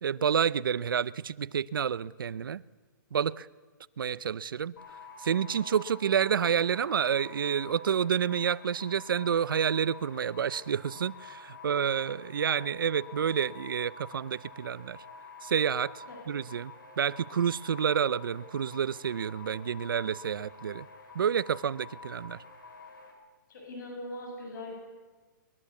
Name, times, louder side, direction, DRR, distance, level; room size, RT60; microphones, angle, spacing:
voice 1, 0.0-2.6 3.1-3.5 4.0-4.7 5.2-15.0 15.4-20.9 21.1-22.4, right 8 dB, 90° right, 0.7 m, -29 dB
sound 1, 4.8-23.1, left 4 dB, 90° left, 8.0 m, -48 dB
voice 2, 23.5-24.7, left 1 dB, 65° left, 7.7 m, -40 dB
22.0 x 22.0 x 8.4 m
hypercardioid pair, 155°, 11 cm